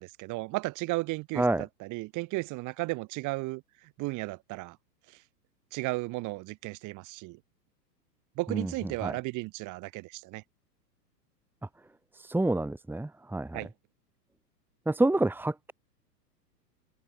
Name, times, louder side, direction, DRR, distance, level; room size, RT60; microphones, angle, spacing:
voice 1, 0.0-3.6 4.0-4.8 5.7-7.4 8.4-10.4 13.5-13.7, right 22 dB, 35° right, 5.4 m, -34 dB
voice 2, 12.2-13.6 14.9-15.7, right 2 dB, 5° right, 3.0 m, -28 dB
figure-of-eight pair, 105°, 50 cm